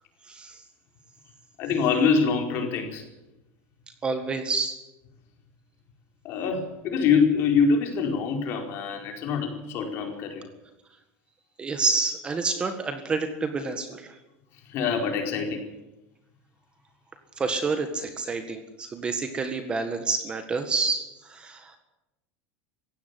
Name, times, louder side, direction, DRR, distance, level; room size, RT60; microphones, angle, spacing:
voice 1, 0.2-0.6 4.0-4.8 11.6-14.2 17.4-21.8, right 4 dB, 15° right, 7 dB, 1.7 m, -28 dB
voice 2, 1.6-3.0 6.2-10.5 14.7-15.6, left 5 dB, 40° left, 4 dB, 4.9 m, -24 dB
18.0 x 16.0 x 10.0 m, 0.96 s
supercardioid pair, 170°, 6 cm